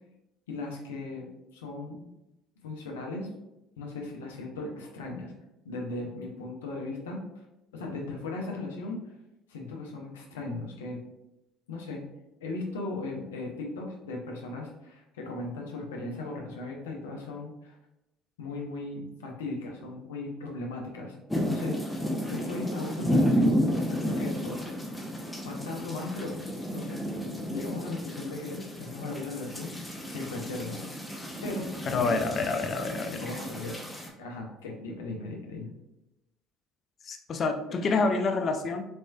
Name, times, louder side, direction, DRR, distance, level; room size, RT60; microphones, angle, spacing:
voice 1, 0.5-1.3 1.5-2.0 2.6-3.3 3.8-5.3 5.6-7.2 7.7-9.0 9.5-11.0 11.7-12.0 12.4-17.7 18.4-21.8 22.3-24.6 25.4-26.4 26.7-27.0 27.5-30.9 31.4-32.1 33.1-33.8 34.2-35.7, left 3 dB, 75° left, 0 dB, 0.8 m, -37 dB
sound 1, 21.3-34.1, equal, 10° left, 0.8 m, -31 dB
voice 2, 31.9-33.2 37.1-38.9, left 3 dB, 40° left, 6 dB, 0.5 m, -27 dB
4.2 x 3.1 x 2.3 m, 0.90 s
figure-of-eight pair, 55°, 0 cm